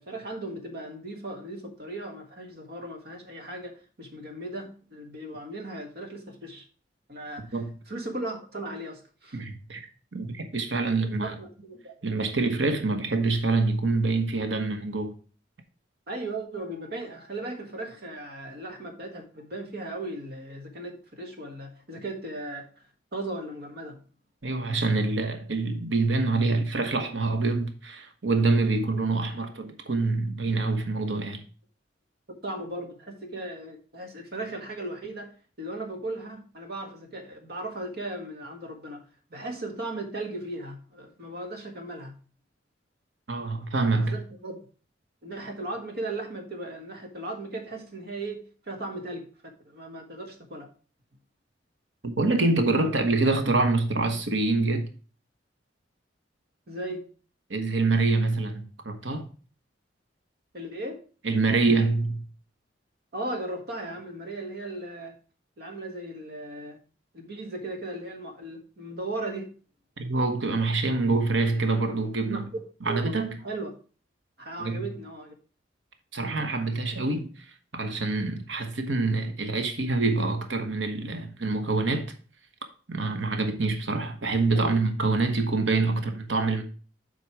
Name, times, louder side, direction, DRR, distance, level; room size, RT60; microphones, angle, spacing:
voice 1, 0.0-3.7 4.0-6.7 7.1-9.4 11.2-11.9 16.1-22.8 23.1-24.0 32.4-39.0 39.3-42.1 44.0-44.6 45.2-49.3 49.7-50.7 56.7-57.1 60.5-61.0 63.1-65.1 65.6-66.8 67.1-69.5 72.3-72.4 72.9-73.1 73.4-73.7 74.4-75.3 84.5-84.8, right 2 dB, 55° right, 1.6 m, -37 dB
voice 2, 9.3-9.8 10.1-11.4 12.0-15.1 24.4-31.4 43.3-44.2 52.0-54.9 57.5-59.3 61.2-62.2 70.0-72.4 72.8-73.3 74.6-74.8 76.1-82.1 82.9-86.6, right 3 dB, 80° right, 1.2 m, -26 dB
7.5 x 4.7 x 4.7 m
head